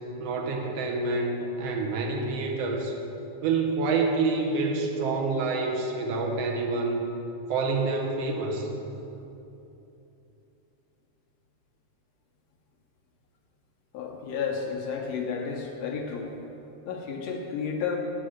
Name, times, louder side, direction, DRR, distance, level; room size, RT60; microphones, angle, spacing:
voice 1, 0.2-2.9 3.4-7.0 7.5-8.7, right 3 dB, 65° right, 2 dB, 1.9 m, -27 dB
voice 2, 13.9-16.3 16.9-18.0, left 6 dB, 70° left, 1 dB, 1.8 m, -32 dB
8.3 x 8.3 x 6.4 m, 2.9 s
omnidirectional pair, 3.5 m